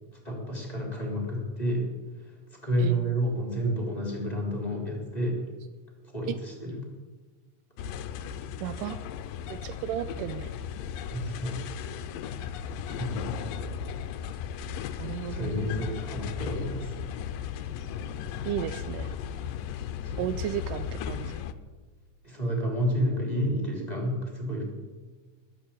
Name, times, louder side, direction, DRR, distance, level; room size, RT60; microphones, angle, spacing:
voice 1, 0.1-1.9 2.2-5.4 6.0-6.8 11.1-11.6 13.0-13.3 15.3-16.9 20.0-20.3 22.2-24.6, equal, 10° left, 0 dB, 3.3 m, -30 dB
voice 2, 2.8-3.2 6.3-6.4 8.6-9.0 9.5-10.5 15.0-16.0 18.5-19.1 20.2-21.4, right 12 dB, 80° right, 12 dB, 2.1 m, -34 dB
sound 1, 7.8-21.5, left 8 dB, 90° left, 2.4 m, -36 dB
20.5 x 7.5 x 8.6 m, 1.4 s
omnidirectional pair, 3.9 m